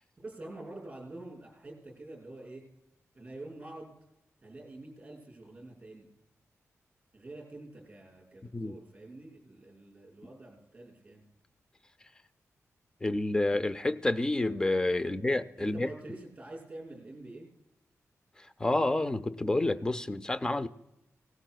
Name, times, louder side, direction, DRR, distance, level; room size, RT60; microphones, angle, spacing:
voice 1, 0.2-2.6 3.1-4.0 4.4-6.1 7.1-11.2 15.0-15.1 15.6-17.5, right 2 dB, 20° right, -2 dB, 5.5 m, -46 dB
voice 2, 13.0-15.9 18.6-20.7, left 2 dB, 15° left, 13 dB, 0.4 m, -29 dB
18.5 x 13.0 x 2.3 m, 0.89 s
wide cardioid pair, 155°, 5 cm